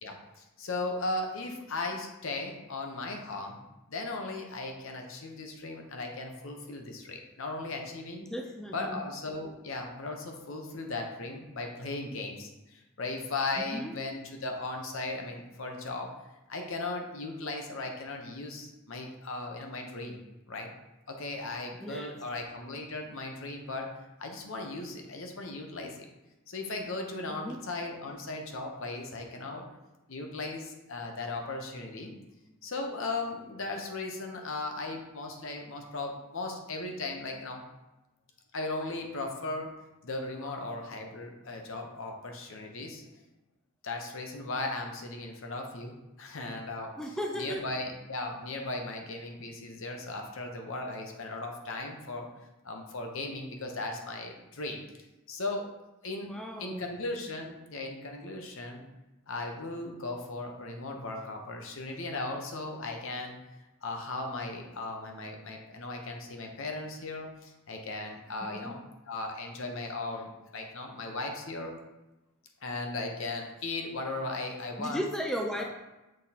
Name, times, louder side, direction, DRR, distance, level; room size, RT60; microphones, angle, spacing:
voice 1, 0.0-3.6 3.9-8.3 8.7-16.1 16.5-20.2 20.5-20.7 21.1-23.9 24.2-26.1 26.5-29.7 30.1-32.2 32.6-37.7 38.5-39.7 40.0-43.0 43.8-52.3 52.6-54.8 55.3-55.7 56.0-58.9 59.3-63.4 63.8-68.8 69.1-71.8 72.6-75.0 75.6-75.7, left 2 dB, 60° left, 2 dB, 0.9 m, -37 dB
voice 2, 8.2-9.0 13.6-13.9 21.8-22.1 27.3-27.6 40.4-40.6 47.0-47.6 56.2-56.8 68.4-68.7 74.8-75.6, equal, 5° left, 1 dB, 0.4 m, -36 dB
6.4 x 3.7 x 4.2 m, 1.0 s
head